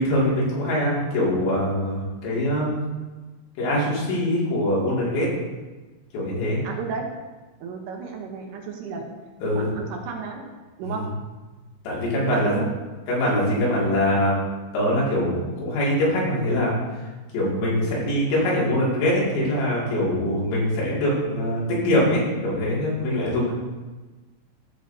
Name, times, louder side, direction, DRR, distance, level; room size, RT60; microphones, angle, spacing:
voice 1, 0.0-2.8 3.6-5.3 6.1-6.6 9.4-9.7 10.8-11.1 11.8-12.6 13.1-14.4 14.7-16.7 17.3-23.5, left 1 dB, 75° left, -5 dB, 4.4 m, -23 dB
voice 2, 6.6-7.1 7.6-9.1 9.4-10.5 10.8-11.1 12.2-12.7 13.6-13.7 17.8-18.0, right 5 dB, 75° right, 1 dB, 2.9 m, -33 dB
13.0 x 7.3 x 2.7 m, 1.2 s
omnidirectional pair, 5.2 m